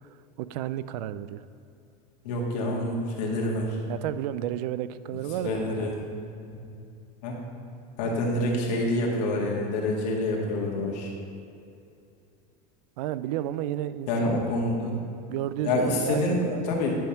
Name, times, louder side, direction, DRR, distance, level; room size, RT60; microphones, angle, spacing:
voice 1, 0.4-1.4 3.9-5.6 8.0-8.1 13.0-14.4 15.3-16.2 16.5-16.8, right 12 dB, 75° right, 14 dB, 0.4 m, -32 dB
voice 2, 2.2-3.8 5.4-6.0 6.6-6.7 7.2-7.4 8.0-11.1 14.1-15.0 15.6-16.4 16.7-17.0, left 1 dB, 75° left, -2 dB, 1.8 m, -27 dB
10.5 x 3.5 x 5.8 m, 2.6 s
supercardioid pair, 160°, 21 cm